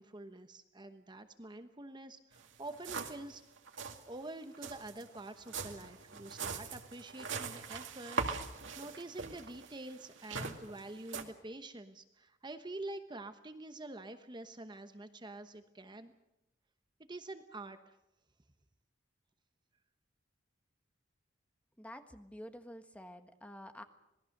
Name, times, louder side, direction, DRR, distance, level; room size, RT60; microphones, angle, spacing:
voice 1, 0.0-3.4 4.1-16.1 17.1-18.0, right 2 dB, 25° right, 8 dB, 1.0 m, -47 dB
sound 1, 2.4-2.5 2.7-3.3 3.6-4.0 4.5-11.2, right 4 dB, 80° right, 2.1 m, -41 dB
voice 2, 21.8-23.8, left 1 dB, 5° left, 7 dB, 1.4 m, -49 dB
26.5 x 20.0 x 6.6 m, 0.91 s
head